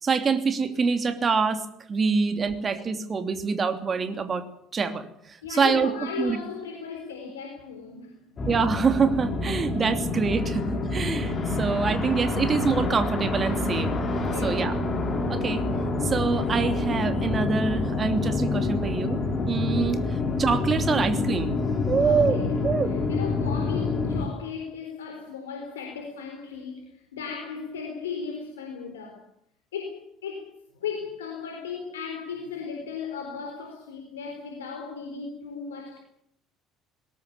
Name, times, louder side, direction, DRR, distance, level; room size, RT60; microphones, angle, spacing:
voice 1, 0.0-1.6 1.9-4.4 4.7-5.1 5.5-5.9 6.2-6.4 8.5-10.6 10.9-13.9 14.4-14.7 15.3-15.6 16.0-19.2 19.4-21.5 21.9-22.9, right 5 dB, 30° right, 8 dB, 3.1 m, -25 dB
voice 2, 5.4-8.4 14.2-14.7 22.0-22.5 22.8-29.2 29.7-36.0, left 6 dB, 75° left, 3 dB, 4.1 m, -36 dB
sound 1, 8.4-24.3, left 3 dB, 35° left, 5.6 m, -27 dB
21.5 x 19.5 x 8.6 m, 0.71 s
figure-of-eight pair, 60°, 0 cm